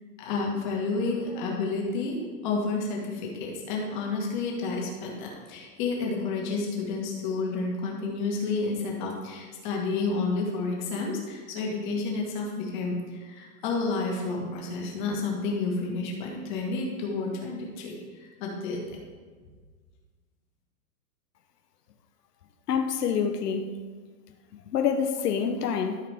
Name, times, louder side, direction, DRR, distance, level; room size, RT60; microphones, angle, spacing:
voice 1, 0.2-18.8, left 3 dB, 30° left, 1.7 m, -30 dB
voice 2, 22.7-23.7 24.7-26.0, left 7 dB, 90° left, 0.9 m, -26 dB
12.5 x 5.9 x 3.6 m
hypercardioid pair, 170°, 46 cm